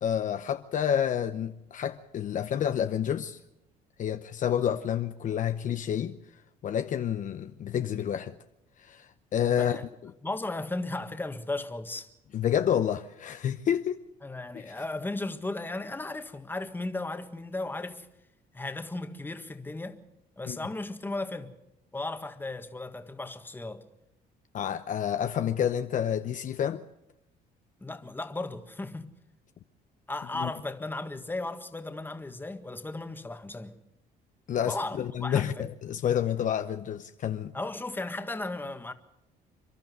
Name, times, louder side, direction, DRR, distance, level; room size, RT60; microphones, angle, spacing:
voice 1, 0.0-3.4 4.0-6.2 6.6-8.4 8.8-9.8 10.0-10.1 12.3-14.0 14.5-14.7 20.5-20.6 24.5-26.8 30.3-30.5 34.5-37.5, left 9 dB, 50° left, 0.8 m, -29 dB
voice 2, 10.2-12.1 14.2-18.1 18.5-20.0 20.4-21.5 21.9-23.8 27.8-29.1 30.1-33.8 34.6-35.7 37.5-38.9, left 2 dB, 10° left, 1.6 m, -35 dB
28.5 x 12.0 x 8.0 m
cardioid pair, 110°, 17 cm